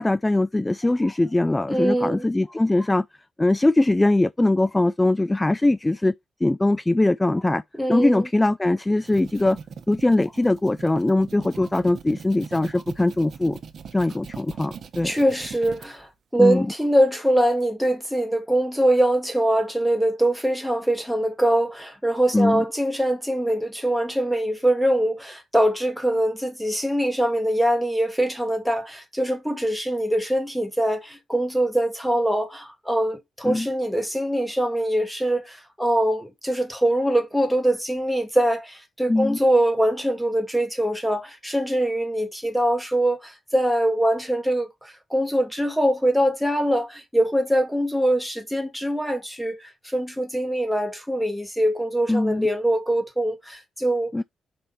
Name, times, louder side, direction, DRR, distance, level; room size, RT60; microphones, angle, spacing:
voice 1, 0.0-3.1 3.4-6.1 6.4-7.6 7.9-9.6 9.9-13.6 13.9-15.1 16.4-16.7 22.3-22.6 33.4-33.7 39.1-39.4 52.1-52.5 54.1-54.2, left 2 dB, 15° left, 0.3 m, -21 dB
voice 2, 1.7-2.3 7.7-8.3 15.0-54.1, right 1 dB, ahead, 1.7 m, -23 dB
sound 1, 8.8-15.9, right 6 dB, 65° right, 1.0 m, -41 dB
5.9 x 3.2 x 5.5 m
cardioid pair, 70°, 0 cm